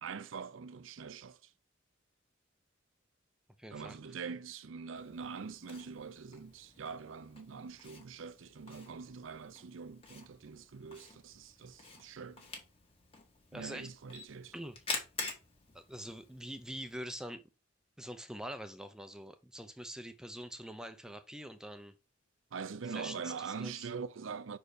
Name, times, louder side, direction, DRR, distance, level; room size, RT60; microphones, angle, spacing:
voice 1, 0.0-1.5 3.7-12.5 13.5-14.5 22.5-24.6, right 5 dB, 85° right, 0.5 m, -44 dB
voice 2, 3.6-4.0 13.5-13.9 14.5-14.8 15.7-17.4 18.0-21.9 22.9-23.9, equal, 5° right, 0.5 m, -44 dB
Camera, 4.9-16.9, left 3 dB, 30° left, 1.6 m, -47 dB
5.6 x 4.5 x 4.8 m
head